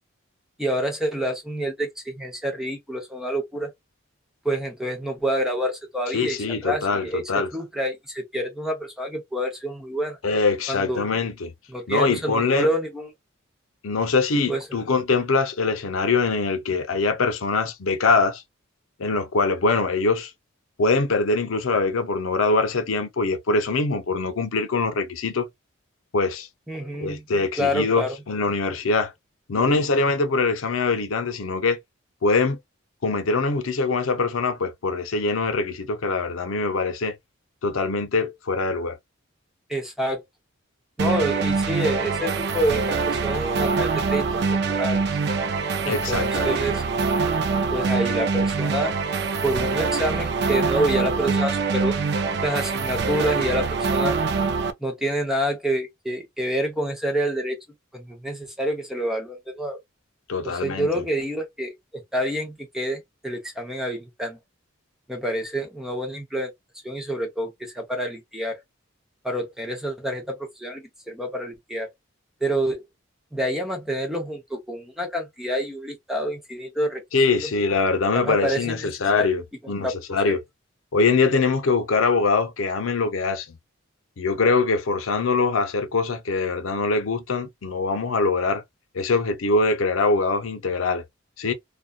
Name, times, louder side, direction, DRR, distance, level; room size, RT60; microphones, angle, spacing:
voice 1, 0.6-3.7 4.4-10.2 10.7-11.0 11.7-13.1 14.5-14.6 26.7-27.2 27.6-28.1 29.5-29.8 39.7-40.2 41.0-44.3 44.5-45.0 45.8-46.8 47.7-48.9 49.4-51.9 52.4-54.2 54.8-57.6 57.9-59.8 60.4-64.4 65.1-66.5 66.8-68.6 69.2-71.9 72.4-72.8 73.3-77.0 78.1-78.9 79.2-79.3 79.6-79.9 80.3-80.4, right 1 dB, ahead, 0.6 m, -27 dB
voice 2, 6.1-7.5 10.2-11.5 11.9-12.7 13.8-18.4 19.0-20.3 20.8-25.5 26.1-26.5 27.0-29.1 29.5-31.8 32.2-32.6 33.0-37.2 37.6-39.0 45.9-46.6 60.3-61.0 77.1-79.4 79.7-80.4 80.9-83.6 84.2-88.6 88.9-91.0 91.4-91.5, left 3 dB, 80° left, 0.6 m, -23 dB
sound 1, 41.0-54.7, right 4 dB, 55° right, 0.4 m, -24 dB
2.5 x 2.3 x 2.2 m
head